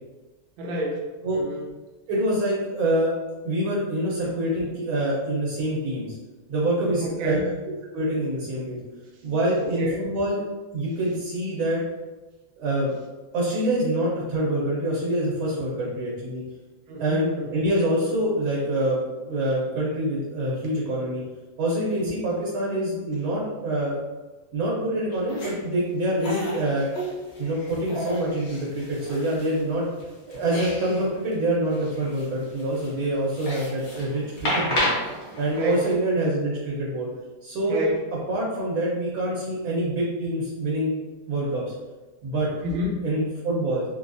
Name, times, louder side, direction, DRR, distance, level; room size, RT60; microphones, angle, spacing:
voice 1, 0.6-1.6 7.0-7.6 9.1-9.2 9.6-10.1 16.9-17.7 35.5-35.8 37.7-38.0 42.6-43.1, equal, 65° right, -3 dB, 0.9 m, -29 dB
voice 2, 2.1-3.1 3.4-6.2 6.5-7.4 7.9-8.8 9.2-10.4 10.7-11.8 12.6-12.9 13.3-16.4 17.0-21.2 21.6-24.0 24.5-26.9 27.4-29.8 30.3-34.9 35.4-37.1 37.4-37.8 38.3-40.9 41.3-41.6 42.2-42.5 43.0-43.8, right 1 dB, 85° right, -6 dB, 1.6 m, -25 dB
sound 1, 25.1-25.5 26.2-29.6 30.0-31.0 31.3-31.4 31.7-35.9, equal, 55° left, 0.8 m, -32 dB
4.0 x 2.3 x 2.5 m, 1.2 s
omnidirectional pair, 2.1 m